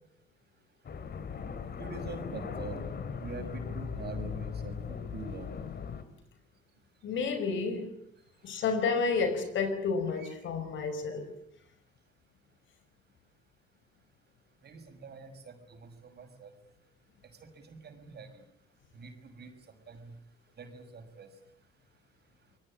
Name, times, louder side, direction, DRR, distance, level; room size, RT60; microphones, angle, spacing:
sound 1, 0.8-6.0, left 6 dB, 55° left, 3.0 m, -38 dB
voice 1, 1.8-2.8 3.2-5.5 14.6-16.5 17.7-18.3 18.9-19.5 19.9-20.1 20.6-21.3, right 4 dB, 55° right, 6.2 m, -44 dB
voice 2, 7.0-7.9 8.4-11.3, left 5 dB, 75° left, 5.3 m, -30 dB
26.5 x 21.0 x 8.8 m
cardioid pair, 90°, 20 cm